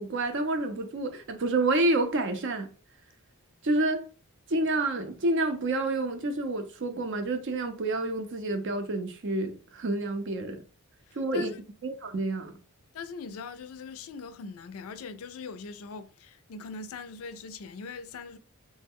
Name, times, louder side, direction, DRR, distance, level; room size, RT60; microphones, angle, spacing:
voice 1, 0.0-2.7 3.6-4.1 4.5-10.6 11.2-11.5 11.8-12.5, right 2 dB, 55° right, 0.5 m, -28 dB
voice 2, 11.1-11.6 12.9-18.4, left 4 dB, 65° left, 0.4 m, -41 dB
3.1 x 2.1 x 3.5 m
head